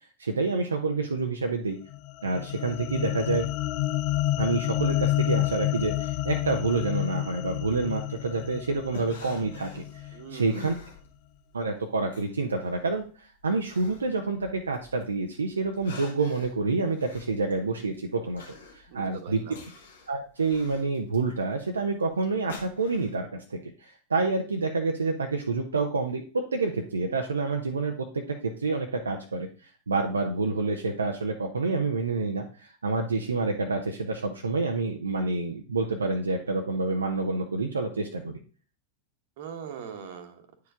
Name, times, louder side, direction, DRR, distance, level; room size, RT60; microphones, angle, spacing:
voice 1, 0.2-1.8 2.2-3.5 4.4-9.8 10.3-10.7 11.5-18.4 18.7-19.4 20.1-26.2 26.5-29.5 29.9-38.4, right 3 dB, 75° right, 3 dB, 0.7 m, -28 dB
sound 1, 1.9-10.4, left 15 dB, 40° left, 0.4 m, -30 dB
sound 2, 8.2-11.5 11.8-15.1 15.5-23.2, left 4 dB, 65° left, 1.7 m, -47 dB
voice 2, 10.1-10.7 18.9-19.6 39.4-40.5, right 7 dB, 50° right, 7 dB, 1.2 m, -41 dB
9.3 x 4.7 x 3.6 m, 0.39 s
figure-of-eight pair, 90°, 0 cm